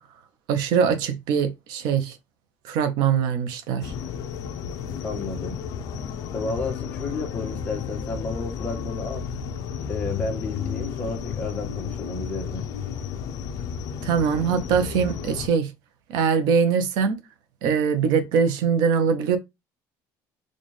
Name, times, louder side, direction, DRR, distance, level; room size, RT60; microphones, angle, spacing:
voice 1, 0.5-2.2 2.6-3.9 14.0-15.7 16.1-17.2 17.6-19.4, right 6 dB, 70° right, 0.7 m, -22 dB
sound 1, 3.8-15.5, left 7 dB, 50° left, 0.5 m, -32 dB
voice 2, 5.0-5.6 6.3-9.2 9.9-12.7, left 3 dB, 20° left, 1.1 m, -32 dB
4.2 x 2.4 x 3.1 m
cardioid pair, 175°, 8 cm